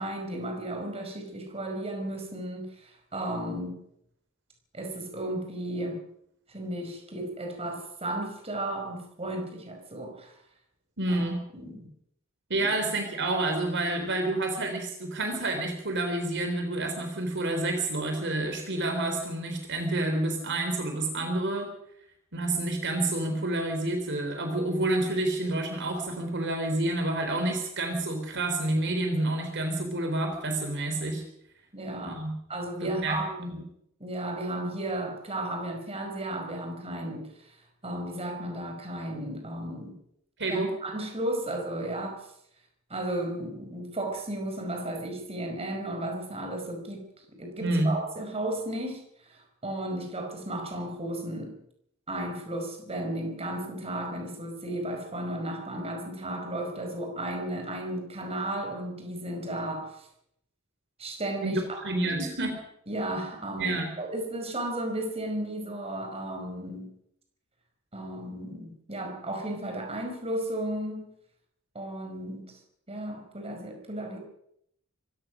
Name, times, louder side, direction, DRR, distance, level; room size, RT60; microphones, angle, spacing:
voice 1, 0.0-3.8 4.7-6.0 6.5-10.4 11.1-11.9 31.7-32.2 32.5-33.5 34.0-40.0 40.5-42.3 42.9-47.0 47.4-51.6 52.1-60.1 61.0-62.2 62.9-66.9 67.9-71.1 71.8-72.5 72.9-74.2, right 1 dB, 30° right, 3 dB, 5.1 m, -34 dB
voice 2, 11.0-11.4 12.5-21.7 22.3-31.2 32.0-32.4 32.8-33.2 33.5-33.6 40.4-40.7 47.6-47.9 61.4-62.5 63.6-63.9, right 2 dB, 55° right, 5 dB, 3.7 m, -29 dB
25.5 x 17.0 x 6.2 m, 0.75 s
head